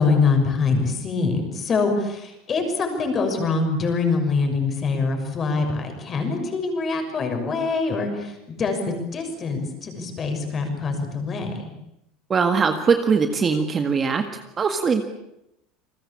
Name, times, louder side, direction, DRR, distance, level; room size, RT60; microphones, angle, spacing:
voice 1, 0.0-11.7, left 4 dB, 25° left, 5 dB, 6.4 m, -24 dB
voice 2, 12.3-14.2 14.6-15.0, right 5 dB, 20° right, 6 dB, 1.8 m, -21 dB
29.0 x 21.0 x 8.7 m, 0.85 s
cardioid pair, 155°, 0 cm